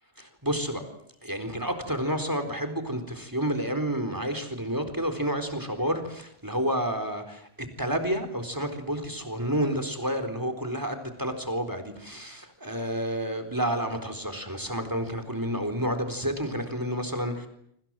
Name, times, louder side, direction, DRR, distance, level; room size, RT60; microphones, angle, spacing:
voice 1, 0.2-0.8 1.2-17.5, equal, 20° right, 9 dB, 4.2 m, -30 dB
26.5 x 26.0 x 7.7 m, 0.70 s
omnidirectional pair, 1.1 m